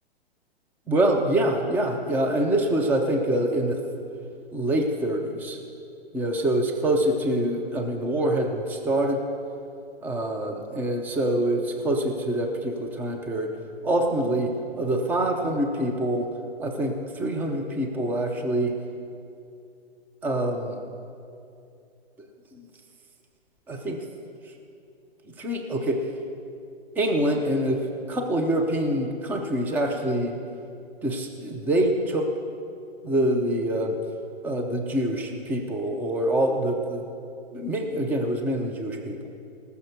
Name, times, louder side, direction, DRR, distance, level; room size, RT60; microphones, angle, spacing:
voice 1, 0.9-3.8 4.5-5.6 6.1-9.2 10.0-13.5 13.8-16.3 16.6-18.7 20.2-20.8 22.5-22.7 23.7-24.0 25.4-26.0 27.0-27.8 28.1-30.4 31.0-32.3 33.0-34.0 34.4-37.0 37.5-39.2, right 1 dB, 5° right, 3 dB, 0.6 m, -25 dB
18.5 x 6.7 x 6.6 m, 2.6 s
hypercardioid pair, 145°, 31 cm